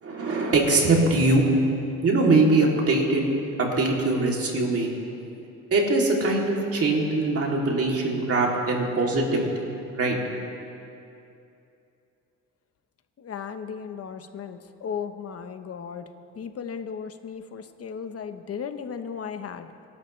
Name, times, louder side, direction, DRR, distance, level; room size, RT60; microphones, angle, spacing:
voice 1, 0.0-1.6 2.0-3.2 3.6-4.9 5.7-9.4 9.9-10.2, right 2 dB, 50° right, -1 dB, 3.1 m, -22 dB
voice 2, 13.2-16.0 16.3-19.7, left 7 dB, 50° left, 8 dB, 1.1 m, -35 dB
26.5 x 11.5 x 3.3 m, 2.7 s
cardioid pair, 90°, 30 cm